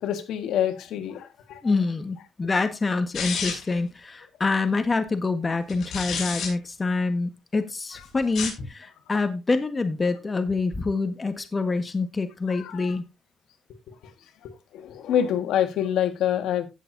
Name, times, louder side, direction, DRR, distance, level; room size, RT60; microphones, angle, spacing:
voice 1, 0.0-1.7 12.5-13.0 14.4-16.7, left 10 dB, 85° left, 1.6 m, -27 dB
voice 2, 1.6-13.0, left 3 dB, 30° left, 1.5 m, -26 dB
sound 1, 3.1-3.8 5.7-6.5 8.2-8.7, left 5 dB, 60° left, 5.8 m, -30 dB
17.0 x 6.9 x 2.7 m
cardioid pair, 90°, 0 cm